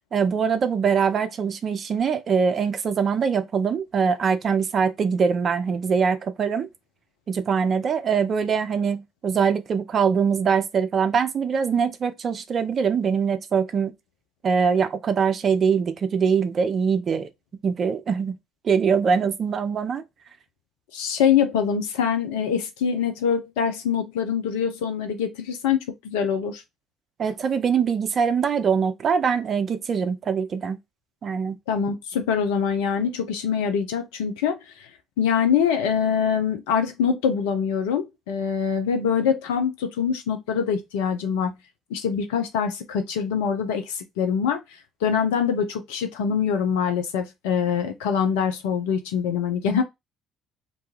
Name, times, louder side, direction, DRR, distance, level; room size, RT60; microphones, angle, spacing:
voice 1, 0.1-6.7 7.3-13.9 14.4-17.3 17.6-18.4 18.6-20.0 27.2-30.8 31.2-31.6, right 6 dB, 40° right, 0.5 m, -23 dB
voice 2, 20.9-25.8 26.0-26.6 31.7-34.9 35.2-41.5 41.9-49.8, left 7 dB, 70° left, 0.4 m, -24 dB
2.6 x 2.3 x 2.9 m
figure-of-eight pair, 55°, 0 cm